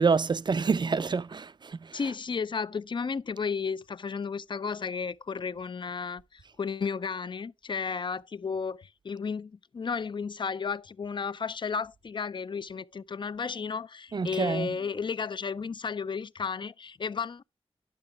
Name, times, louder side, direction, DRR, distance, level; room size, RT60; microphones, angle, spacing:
voice 1, 0.0-2.0 14.1-14.7, right 5 dB, 45° right, 0.4 m, -27 dB
voice 2, 1.9-17.4, left 5 dB, 50° left, 0.4 m, -33 dB
10.5 x 6.6 x 3.4 m
wide cardioid pair, 70°, 10 cm